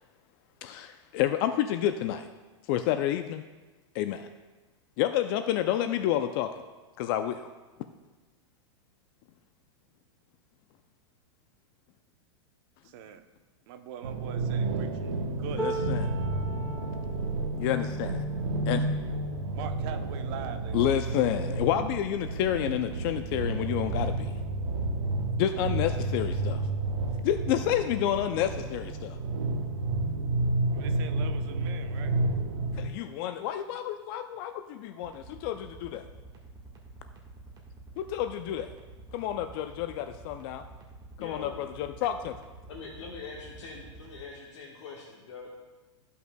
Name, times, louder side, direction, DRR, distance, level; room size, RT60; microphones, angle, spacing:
voice 1, 0.6-2.3 2.7-3.4 3.9-4.3 5.0-6.5 7.0-7.4 15.5-16.2 17.6-18.2 18.7-18.9 20.7-24.3 25.4-26.6 27.2-29.2 32.8-36.0 38.0-38.7 39.1-40.6 41.2-42.4, left 11 dB, 50° left, 9 dB, 0.4 m, -29 dB
voice 2, 12.8-13.2 13.7-15.8 19.5-21.1 30.7-32.1, right 9 dB, 55° right, 7 dB, 0.7 m, -43 dB
sound 1, 14.0-32.9, right 2 dB, 90° right, 0.9 m, -31 dB
sound 2, 15.6-21.7 22.3-22.5 22.8-23.6 24.5-24.6, right 2 dB, 10° right, 1.7 m, -41 dB
sound 3, 35.0-44.2, right 2 dB, 30° right, 1.5 m, -49 dB
voice 3, 41.2-41.6 42.6-45.5, left 4 dB, 80° left, -3 dB, 1.3 m, -43 dB
14.0 x 5.5 x 2.2 m, 1.2 s
hypercardioid pair, 125°, 15 cm